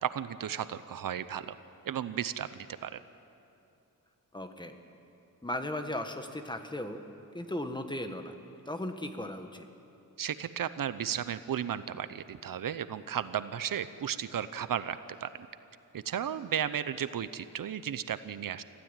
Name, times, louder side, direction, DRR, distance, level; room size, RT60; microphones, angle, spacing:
voice 1, 0.0-1.6 1.8-3.0 10.2-15.3 15.9-18.6, right 9 dB, 75° right, 13 dB, 0.8 m, -34 dB
voice 2, 4.3-4.8 5.4-7.0 7.3-8.3 8.7-9.7, left 1 dB, 15° left, 6 dB, 1.5 m, -36 dB
25.0 x 15.5 x 9.1 m, 2.8 s
wide cardioid pair, 125°, 34 cm